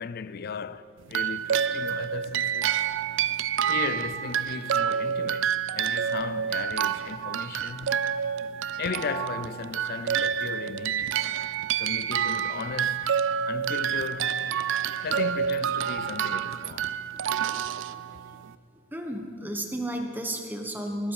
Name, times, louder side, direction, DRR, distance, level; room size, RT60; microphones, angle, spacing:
voice 1, 0.0-2.8 3.7-8.0 8.8-11.1 11.8-13.2 13.5-14.4 15.0-17.0, left 5 dB, 45° left, 0.4 m, -36 dB
sound 1, 1.1-18.5, right 8 dB, 60° right, 0.4 m, -28 dB
voice 2, 17.5-18.0 18.3-18.4 18.9-21.1, right 1 dB, 10° right, 1.2 m, -34 dB
20.0 x 12.5 x 4.8 m
head